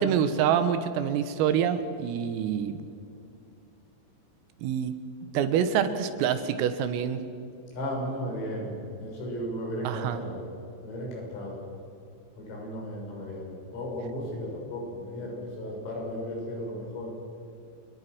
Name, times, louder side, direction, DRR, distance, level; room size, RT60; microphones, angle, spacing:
voice 1, 0.0-2.8 4.6-4.9 5.3-7.2 9.9-10.2, right 8 dB, 85° right, 10 dB, 4.1 m, -26 dB
voice 2, 7.7-10.4 10.8-11.6 12.4-17.1, equal, 85° left, -2 dB, 9.4 m, -35 dB
29.0 x 22.0 x 6.3 m, 2.6 s
omnidirectional pair, 5.9 m